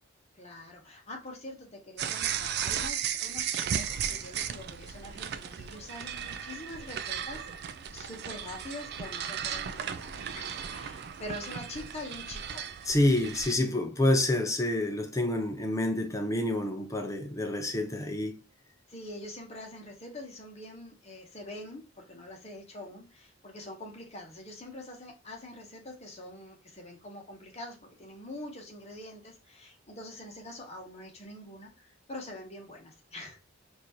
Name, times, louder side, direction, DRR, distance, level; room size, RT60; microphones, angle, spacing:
voice 1, 0.4-12.7 18.9-33.4, left 1 dB, 30° left, 1.0 m, -44 dB
sound 1, 2.0-13.5, right 8 dB, 50° right, 0.3 m, -35 dB
voice 2, 12.9-18.4, left 1 dB, 15° left, 0.5 m, -28 dB
4.2 x 2.6 x 2.8 m
head